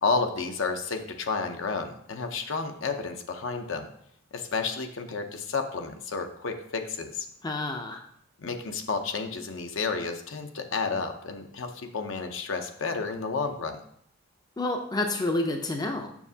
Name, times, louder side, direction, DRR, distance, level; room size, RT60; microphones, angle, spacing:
voice 1, 0.0-3.9 4.3-7.3 8.4-13.8, left 4 dB, 65° left, 6 dB, 0.7 m, -31 dB
voice 2, 7.4-8.0 14.6-16.1, left 2 dB, 20° left, 4 dB, 0.5 m, -29 dB
7.1 x 6.4 x 2.7 m, 0.70 s
head